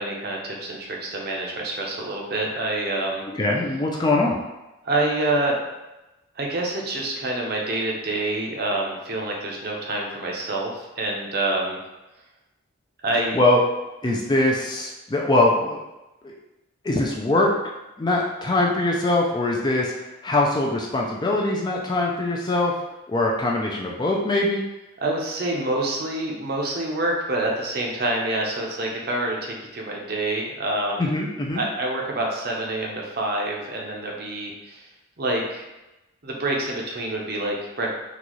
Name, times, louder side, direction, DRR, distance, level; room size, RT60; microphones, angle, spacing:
voice 1, 0.0-3.2 4.8-5.7 6.4-11.8 13.0-13.4 25.0-31.1 31.5-34.9 35.2-35.7 36.2-37.9, right 2 dB, 50° right, -1 dB, 0.6 m, -27 dB
voice 2, 3.3-4.4 13.3-13.6 14.0-15.8 16.2-16.4 16.8-17.5 18.0-22.7 23.1-24.6 31.0-31.6, left 2 dB, 20° left, -1 dB, 0.3 m, -22 dB
3.9 x 2.3 x 3.0 m, 0.99 s
head